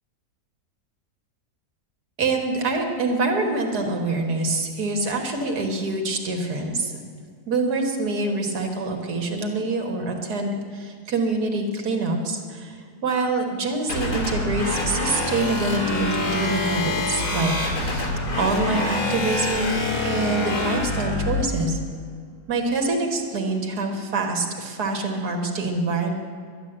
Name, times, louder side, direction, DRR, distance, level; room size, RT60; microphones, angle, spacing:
voice 1, 2.2-6.9 7.5-21.8 22.5-26.1, right 2 dB, 75° right, 3 dB, 2.1 m, -25 dB
sound 1, 13.9-21.4, left 2 dB, 85° left, 3.1 m, -26 dB
12.0 x 10.5 x 7.9 m, 2.1 s
omnidirectional pair, 1.7 m